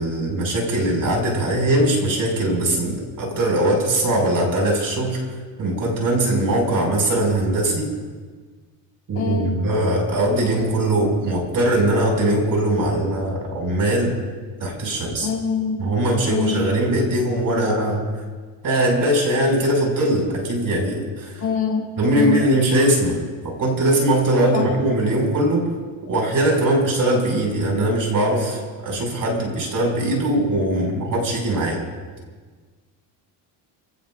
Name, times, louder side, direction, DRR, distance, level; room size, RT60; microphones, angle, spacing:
voice 1, 0.0-7.9 9.1-14.2 14.6-15.3 15.8-18.0 18.6-21.4 22.0-25.7 26.1-31.8, right 1 dB, 45° right, 0 dB, 6.6 m, -21 dB
voice 2, 9.1-9.6 15.2-15.8 16.3-16.6 21.4-21.8 22.1-22.5 24.5-24.6, left 6 dB, 40° left, -3 dB, 5.0 m, -24 dB
29.5 x 18.0 x 2.6 m, 1.4 s
cardioid pair, 105°, 45 cm